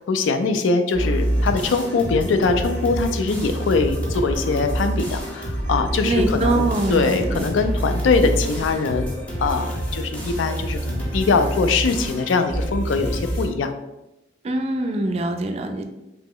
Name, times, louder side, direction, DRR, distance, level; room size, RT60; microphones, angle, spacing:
voice 1, 0.0-9.1 9.4-13.7, left 4 dB, 80° left, 8 dB, 0.3 m, -22 dB
sound 1, 0.9-13.5, right 1 dB, 5° left, 0.6 m, -27 dB
voice 2, 6.0-7.4 14.4-15.8, right 2 dB, 35° right, 5 dB, 0.3 m, -23 dB
2.9 x 2.0 x 3.7 m, 0.95 s
head